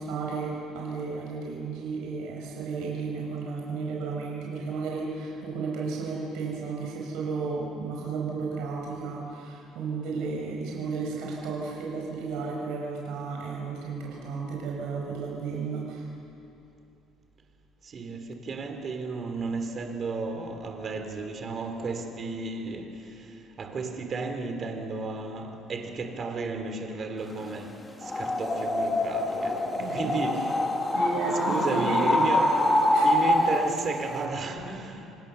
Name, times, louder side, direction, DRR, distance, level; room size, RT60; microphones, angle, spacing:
voice 1, 0.0-16.1 29.8-30.0 30.9-32.2 32.9-33.1, right 4 dB, 70° right, 5.4 m, -33 dB
voice 2, 17.8-30.7 31.3-35.1, right 3 dB, 30° right, 3.0 m, -34 dB
sound 1, 28.0-33.8, left 1 dB, 10° left, 2.1 m, -25 dB
28.0 x 26.5 x 6.9 m
cardioid pair, 165°, 0 cm